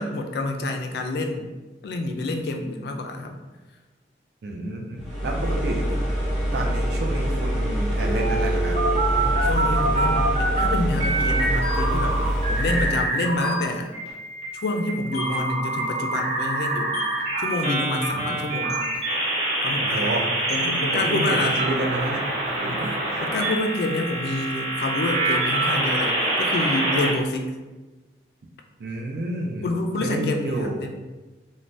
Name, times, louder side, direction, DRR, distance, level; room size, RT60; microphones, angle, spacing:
voice 1, 0.0-1.5 1.8-3.4 9.1-13.9 14.5-17.0 17.4-18.8 19.6-20.2 20.5-21.6 22.7-22.9 23.2-27.6 29.6-30.9, left 2 dB, 60° left, 4 dB, 0.3 m, -28 dB
voice 2, 4.4-5.9 6.5-8.8 18.1-18.4 19.8-20.3 20.9-22.2 22.6-23.2 28.8-29.7 30.0-30.8, right 1 dB, 60° right, 1 dB, 0.4 m, -29 dB
sound 1, 5.0-13.1, equal, 5° right, 0.7 m, -25 dB
sound 2, 8.0-10.7 11.0-13.6 13.9-27.1, right 2 dB, 35° right, 0.9 m, -26 dB
sound 3, 8.2-8.8 9.9-10.6 11.6-12.0 13.4-13.8 15.1-15.4 16.9-17.2 18.7-18.9 20.5-20.7, equal, 40° left, 0.7 m, -34 dB
3.2 x 2.1 x 2.5 m, 1.2 s
head